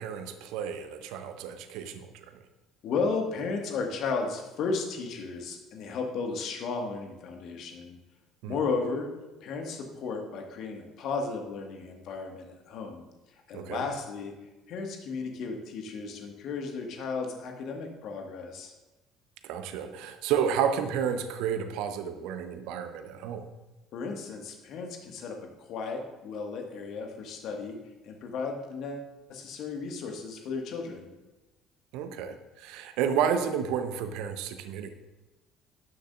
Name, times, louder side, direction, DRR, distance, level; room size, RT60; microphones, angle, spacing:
voice 1, 0.0-2.2 8.4-8.6 13.5-13.8 19.4-23.4 31.9-34.9, right 8 dB, 60° right, 8 dB, 0.8 m, -31 dB
voice 2, 2.8-8.0 8.4-9.1 9.4-13.0 13.5-14.3 14.7-18.7 23.9-27.8 28.0-31.1, left 4 dB, 50° left, 3 dB, 1.7 m, -34 dB
12.0 x 10.0 x 2.5 m, 1.1 s
figure-of-eight pair, 55°, 0 cm